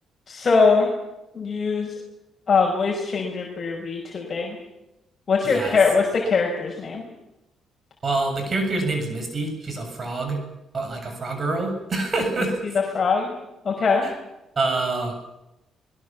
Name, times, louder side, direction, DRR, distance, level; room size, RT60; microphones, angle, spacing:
voice 1, 0.3-0.9 1.3-1.9 2.5-4.6 5.3-7.0 12.9-13.3 13.6-14.1, left 4 dB, 40° left, 0 dB, 5.5 m, -21 dB
voice 2, 5.4-5.8 8.0-10.4 10.7-12.5 14.0-14.1 14.6-15.1, right 3 dB, 40° right, 5 dB, 7.0 m, -26 dB
24.5 x 21.0 x 7.5 m, 0.93 s
cardioid pair, 90°, 0 cm